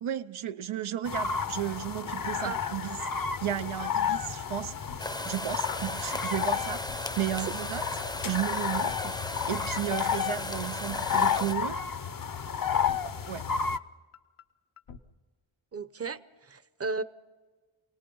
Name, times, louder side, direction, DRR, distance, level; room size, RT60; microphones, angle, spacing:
voice 1, 0.0-3.0 3.4-4.7 5.3-7.8 8.2-11.8 13.3-13.4, right 11 dB, 85° right, 0.8 m, -33 dB
sound 1, 1.1-13.8, left 7 dB, 45° left, 0.7 m, -31 dB
sound 2, 3.8-3.9 4.1-4.4 4.8-5.0 5.3-5.4 5.8-5.9 6.1-6.4 6.8-7.0 7.3-7.4 7.8-7.9 8.1-8.4 8.8-9.0 9.3-9.4 9.8-9.9 10.1-10.4 10.8-11.0 11.3-11.4 11.8-11.9 12.1-12.4 12.8-13.0 13.3-13.4 13.8-13.9 14.1-14.4 14.8-15.0, left 7 dB, 90° left, 1.2 m, -48 dB
sound 3, 5.0-11.6, left 1 dB, 10° left, 0.6 m, -37 dB
voice 2, 15.7-17.0, right 4 dB, 30° right, 0.8 m, -35 dB
28.0 x 19.0 x 5.5 m
wide cardioid pair, 95°, 48 cm